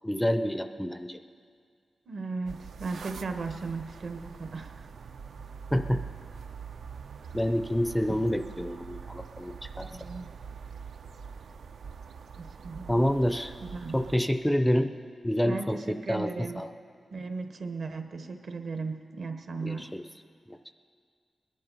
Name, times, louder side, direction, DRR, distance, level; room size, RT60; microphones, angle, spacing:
voice 1, 0.0-1.2 5.7-6.0 7.3-9.9 12.9-13.5 13.9-14.9 15.2-16.7 19.6-20.0 20.5-20.6, equal, 5° left, 9 dB, 0.4 m, -28 dB
voice 2, 2.1-4.9 9.8-10.3 12.4-13.0 13.7-14.0 15.4-16.7 17.1-19.9, right 4 dB, 60° right, 6 dB, 1.0 m, -36 dB
sound 1, 2.4-14.2, right 6 dB, 80° right, 0.5 m, -44 dB
20.5 x 11.0 x 5.5 m, 2.1 s
wide cardioid pair, 150°, 0 cm